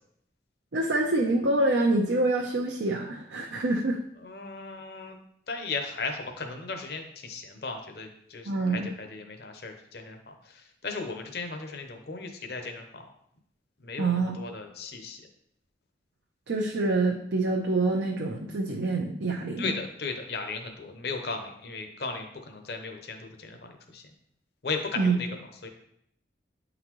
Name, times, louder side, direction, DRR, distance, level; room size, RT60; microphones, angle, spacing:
voice 1, 0.7-4.0 8.5-8.9 14.0-14.3 16.5-19.8 25.0-25.2, right 2 dB, 80° right, 0 dB, 0.6 m, -26 dB
voice 2, 4.2-5.2 5.5-10.3 10.8-12.8 13.8-15.2 19.6-24.0 24.6-25.3 25.6-25.7, left 4 dB, 60° left, 4 dB, 0.8 m, -36 dB
8.7 x 4.0 x 3.0 m, 0.72 s
head